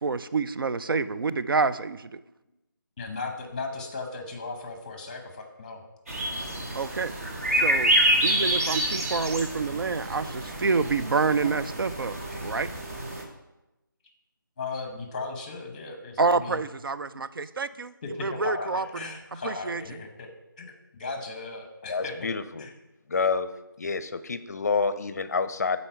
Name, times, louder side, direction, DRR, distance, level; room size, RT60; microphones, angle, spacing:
voice 1, 0.0-2.2 6.7-7.1 7.5-7.9 8.2-12.7 16.2-17.9 18.2-18.9 19.4-19.8, right 4 dB, 80° right, 13 dB, 0.5 m, -27 dB
voice 2, 3.0-5.8 14.6-16.6 18.0-20.3 20.6-22.3 22.6-22.7, left 3 dB, 20° left, 5 dB, 0.9 m, -36 dB
sound 1, 6.1-13.2, right 1 dB, 40° right, 1.3 m, -27 dB
voice 3, 21.9-22.6 23.1-23.5 23.8-25.8, left 4 dB, 50° left, 13 dB, 0.5 m, -28 dB
9.6 x 4.2 x 4.5 m, 0.98 s
figure-of-eight pair, 170°, 12 cm